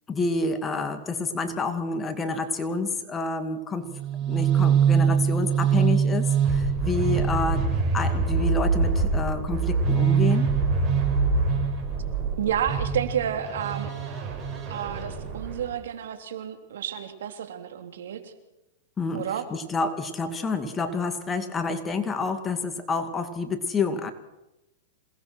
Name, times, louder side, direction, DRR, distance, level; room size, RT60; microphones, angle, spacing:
voice 1, 0.1-3.9 4.3-10.5 19.0-24.1, left 3 dB, 15° left, 8 dB, 2.2 m, -28 dB
sound 1, 3.9-15.7, right 5 dB, 30° right, 6.6 m, -24 dB
voice 2, 12.4-13.9 14.7-18.3 19.1-19.5, right 9 dB, 75° right, 7 dB, 3.2 m, -30 dB
27.5 x 19.0 x 6.3 m, 0.95 s
hypercardioid pair, 135°, 0 cm